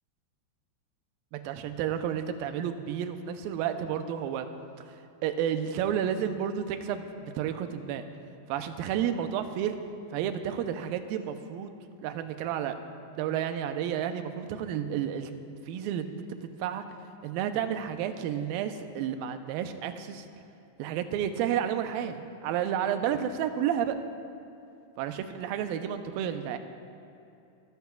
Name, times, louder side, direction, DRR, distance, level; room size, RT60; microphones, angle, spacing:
voice 1, 1.3-4.5 5.2-8.0 8.5-9.8 10.1-11.7 12.0-12.8 13.2-15.3 15.7-16.2 16.6-16.9 17.2-20.3 20.8-24.0 25.0-26.6, right 9 dB, 80° right, 8 dB, 2.3 m, -31 dB
28.0 x 14.0 x 2.4 m, 2.7 s
omnidirectional pair, 4.6 m